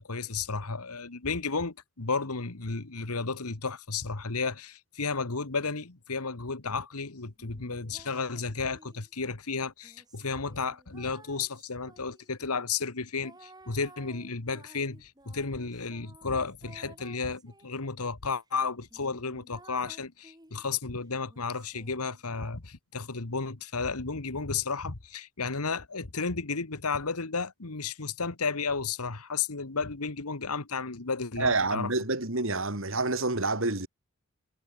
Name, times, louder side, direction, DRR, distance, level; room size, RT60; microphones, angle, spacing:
voice 1, 0.0-31.9, left 4 dB, 90° left, 1.6 m, -33 dB
sound 1, 7.4-9.1 9.8-12.4 13.2-17.9 18.5-18.6 18.9-20.7 21.3-22.5, right 2 dB, 15° right, 7.1 m, -55 dB
voice 2, 31.4-33.9, right 3 dB, 65° right, 3.0 m, -28 dB
head